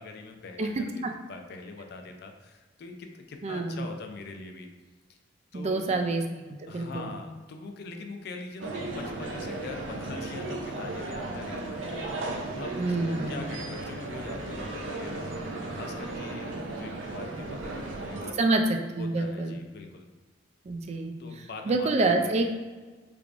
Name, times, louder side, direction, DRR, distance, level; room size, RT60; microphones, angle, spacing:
voice 1, 0.0-1.0 1.3-4.7 5.5-6.0 6.7-18.6 19.0-20.1 21.2-22.3, left 3 dB, 60° left, 4 dB, 0.4 m, -43 dB
voice 2, 0.6-1.1 3.4-3.8 5.5-6.2 6.6-7.1 12.7-13.4 18.3-19.6 20.6-22.5, right 2 dB, 35° right, 5 dB, 0.3 m, -27 dB
sound 1, 8.6-18.3, right 2 dB, 90° right, 0.5 m, -35 dB
3.4 x 3.3 x 2.4 m, 1.3 s
head